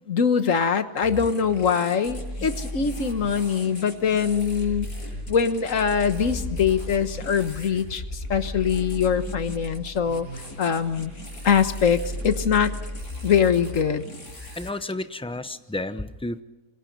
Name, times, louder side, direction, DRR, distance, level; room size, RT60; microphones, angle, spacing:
voice 1, 0.1-4.9 5.3-8.0 8.3-10.3 10.6-11.1 11.4-12.8 13.2-14.0, left 7 dB, 55° left, 10 dB, 1.6 m, -23 dB
sound 1, 1.0-14.7, left 1 dB, 75° left, 8.1 m, -39 dB
sound 2, 2.1-3.5 3.9-10.4 10.7-13.0, equal, 20° right, 4.4 m, -36 dB
voice 2, 14.6-16.4, left 2 dB, 5° left, 11 dB, 0.4 m, -31 dB
27.0 x 24.0 x 5.4 m, 1.0 s
omnidirectional pair, 1.6 m